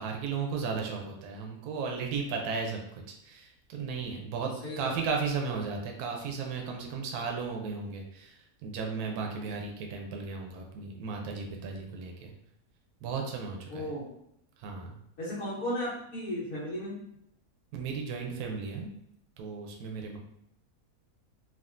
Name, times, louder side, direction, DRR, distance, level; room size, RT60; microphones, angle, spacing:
voice 1, 0.0-12.3 13.0-13.9 14.6-14.9 17.7-18.9 19.4-20.2, right 5 dB, 75° right, 1 dB, 1.0 m, -35 dB
voice 2, 4.6-5.0 13.7-14.1 15.2-16.9, equal, 65° left, -8 dB, 1.2 m, -35 dB
3.6 x 2.3 x 2.4 m, 0.77 s
omnidirectional pair, 1.7 m